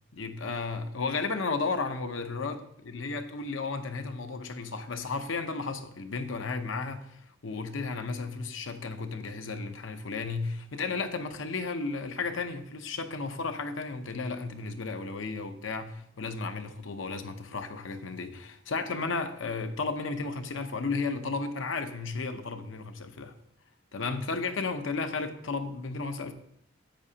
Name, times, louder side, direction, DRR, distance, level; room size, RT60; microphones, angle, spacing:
voice 1, 0.1-23.3 23.9-26.3, left 4 dB, 75° left, 0.8 m, -34 dB
10.0 x 8.1 x 2.8 m
head